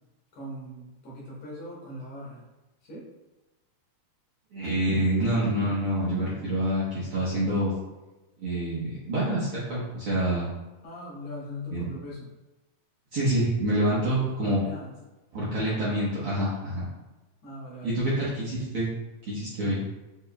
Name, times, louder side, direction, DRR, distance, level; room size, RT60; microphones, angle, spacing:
voice 1, 0.3-2.4 2.8-3.1 10.8-12.3 14.3-14.9 17.4-18.3, equal, 65° left, -6 dB, 2.0 m, -40 dB
voice 2, 4.5-7.7 8.4-10.5 11.7-11.9 13.1-14.6 15.3-16.8 17.8-18.9 19.2-19.8, right 1 dB, 60° right, -10 dB, 1.6 m, -27 dB
5.2 x 4.3 x 2.2 m, 1.1 s
omnidirectional pair, 3.8 m